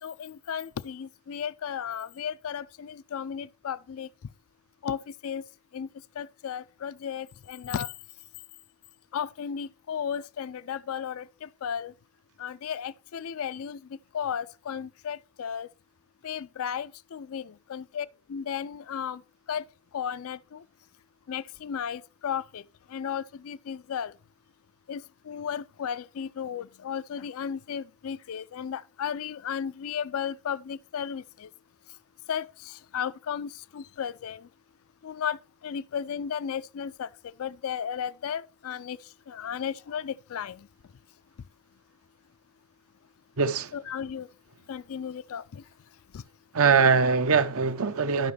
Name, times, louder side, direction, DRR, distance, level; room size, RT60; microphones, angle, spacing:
voice 1, 0.0-4.1 4.8-5.4 5.7-5.9 6.2-7.9 9.1-11.9 12.4-13.8 14.1-15.7 16.2-19.2 19.5-19.6 19.9-20.6 21.3-22.6 22.9-24.1 24.9-31.5 32.3-34.5 35.0-39.0 39.3-40.7 43.7-44.3 44.7-45.6 46.1-46.2, left 8 dB, 70° left, 0.4 m, -34 dB
voice 2, 43.4-43.7 46.5-48.3, right 5 dB, 70° right, 0.8 m, -22 dB
11.5 x 5.9 x 3.3 m
head